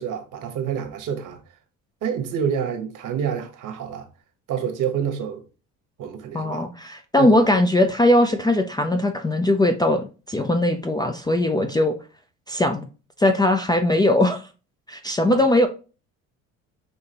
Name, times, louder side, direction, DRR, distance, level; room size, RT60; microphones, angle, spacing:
voice 1, 0.0-1.4 2.0-4.1 4.5-5.4 6.0-6.7 7.2-7.4 15.2-15.4, right 8 dB, 55° right, 1.1 m, -28 dB
voice 2, 6.3-11.9 12.5-12.9 13.2-14.4 14.9-15.7, left 1 dB, 10° left, 0.4 m, -20 dB
5.4 x 2.8 x 2.9 m
supercardioid pair, 75°, 36 cm